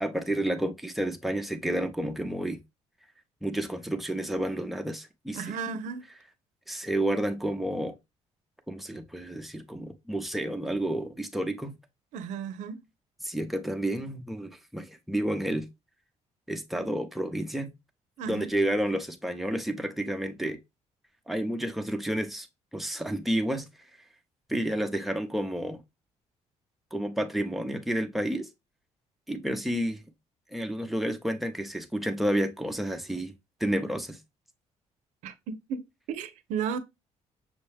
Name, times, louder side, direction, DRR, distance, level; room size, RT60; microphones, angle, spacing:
voice 1, 0.0-2.6 3.4-5.4 6.7-7.9 8.7-11.8 13.2-15.7 16.5-17.7 18.3-20.6 21.3-22.5 22.7-23.7 24.5-25.8 26.9-28.5 29.3-30.0 30.5-33.3 33.6-34.2, right 1 dB, ahead, 0.6 m, -30 dB
voice 2, 5.3-6.1 12.1-12.9 18.2-18.5 35.2-36.8, right 6 dB, 85° right, 0.6 m, -34 dB
6.2 x 2.2 x 3.2 m
cardioid pair, 120°, 12 cm